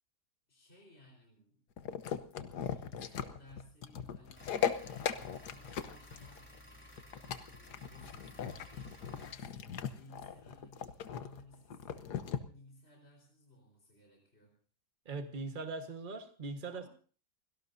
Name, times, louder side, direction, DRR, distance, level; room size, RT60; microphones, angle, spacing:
voice 1, 0.5-1.6 2.7-6.8 7.2-14.6 16.6-16.9, left 1 dB, 40° left, -1 dB, 4.7 m, -60 dB
sound 1, 1.8-12.4, left 8 dB, 85° left, 1.6 m, -38 dB
sound 2, 4.3-9.3, left 1 dB, 5° left, 3.6 m, -55 dB
voice 2, 15.0-16.9, right 3 dB, 35° right, 6 dB, 1.6 m, -40 dB
29.5 x 17.5 x 2.7 m, 0.41 s
omnidirectional pair, 1.7 m